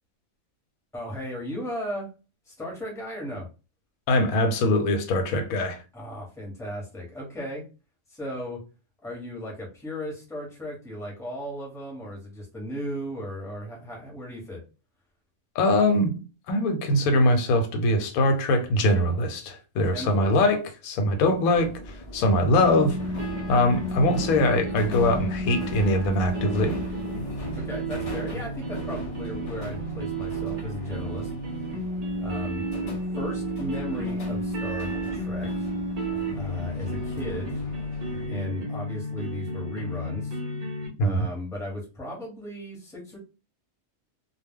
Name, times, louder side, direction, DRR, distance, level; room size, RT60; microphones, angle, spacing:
voice 1, 0.9-2.1 2.5-3.5 5.9-7.6 8.1-8.7 9.0-14.6 19.8-20.3 27.6-31.3 31.6-31.7 32.2-32.7 33.1-35.7 36.3-37.6 38.3-40.4 41.0-43.2, left 1 dB, 5° left, 0.8 m, -36 dB
voice 2, 4.1-5.8 15.6-16.1 16.5-23.0 23.5-26.8 41.0-41.3, left 1 dB, 90° left, 1.1 m, -22 dB
sound 1, 21.5-38.3, left 2 dB, 50° left, 0.4 m, -39 dB
sound 2, 22.6-40.9, right 1 dB, 45° right, 0.5 m, -32 dB
2.2 x 2.2 x 3.5 m
omnidirectional pair, 1.4 m